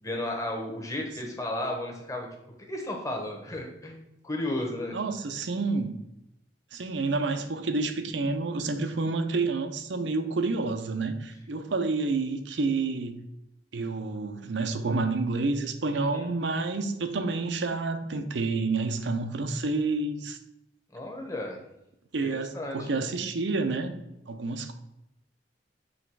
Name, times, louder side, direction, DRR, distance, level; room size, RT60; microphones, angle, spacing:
voice 1, 0.0-2.3 2.7-4.9 15.9-16.3 20.9-21.6 22.2-23.0, left 1 dB, 20° left, 1.0 m, -34 dB
voice 2, 4.9-6.0 6.7-13.2 13.7-20.4 22.1-24.0 24.3-24.7, right 3 dB, 80° right, 0.6 m, -29 dB
6.4 x 3.4 x 4.6 m
head